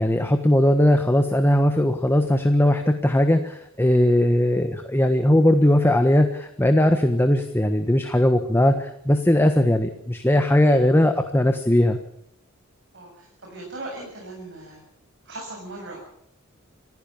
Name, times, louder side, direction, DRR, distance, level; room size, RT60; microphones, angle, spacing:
voice 1, 0.0-12.0, left 1 dB, 10° left, 7 dB, 1.4 m, -19 dB
voice 2, 12.9-14.8 15.2-16.0, right 2 dB, 55° right, -1 dB, 7.3 m, -38 dB
27.5 x 15.5 x 7.2 m, 0.73 s
head